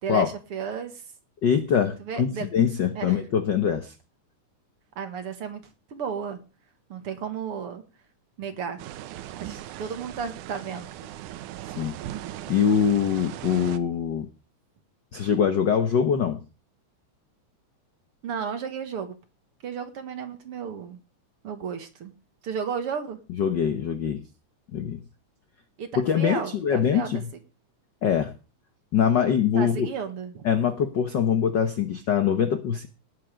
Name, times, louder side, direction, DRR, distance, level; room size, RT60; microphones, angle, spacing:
voice 1, 0.0-1.0 2.0-2.5 3.0-3.2 5.0-5.6 5.9-6.4 6.9-7.8 8.4-8.8 9.4-11.1 18.2-19.2 19.6-21.0 21.4-22.1 22.4-23.2 25.8-27.2 29.6-30.5, right 6 dB, 55° right, 8 dB, 2.2 m, -33 dB
voice 2, 1.4-3.9 11.8-11.9 12.5-14.3 15.1-16.4 23.4-24.2 24.7-25.0 26.0-27.3 28.0-28.3 28.9-29.9 30.4-32.9, left 8 dB, 65° left, 9 dB, 1.1 m, -23 dB
sound 1, 8.8-13.8, right 13 dB, 90° right, 2.3 m, -38 dB
18.5 x 8.1 x 5.0 m, 0.33 s
omnidirectional pair, 3.4 m